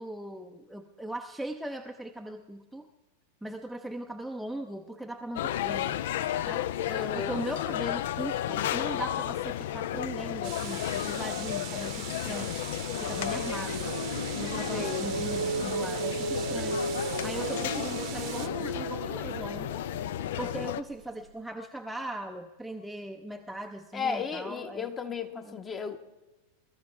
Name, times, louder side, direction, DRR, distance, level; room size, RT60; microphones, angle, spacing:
voice 1, 0.0-2.9 3.4-6.0 6.5-6.7 7.2-12.6 13.0-13.9 14.3-16.8 17.2-19.8 20.4-24.9 25.3-25.6, right 1 dB, ahead, 3 dB, 0.6 m, -39 dB
sound 1, 5.4-20.8, left 12 dB, 55° left, 0.4 m, -33 dB
voice 2, 6.9-7.4 14.7-15.1 23.9-26.0, left 6 dB, 20° left, 8 dB, 1.0 m, -34 dB
sound 2, 10.4-18.5, right 15 dB, 40° right, 0.8 m, -42 dB
sound 3, 12.9-21.0, right 4 dB, 70° right, 0.6 m, -36 dB
21.5 x 13.5 x 3.4 m, 1.1 s
figure-of-eight pair, 90°, 0 cm